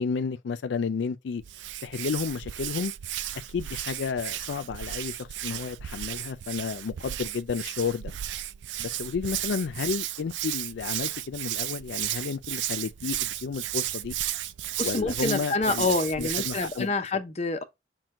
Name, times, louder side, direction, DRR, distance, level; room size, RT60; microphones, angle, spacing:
voice 1, 0.0-1.4 1.8-2.9 3.5-8.1 8.8-14.1 14.8-16.9, left 5 dB, 85° left, 0.4 m, -32 dB
Hands, 1.4-16.8, right 13 dB, 75° right, 0.3 m, -34 dB
voice 2, 14.8-17.6, left 3 dB, 35° left, 0.6 m, -27 dB
6.0 x 2.2 x 3.6 m
head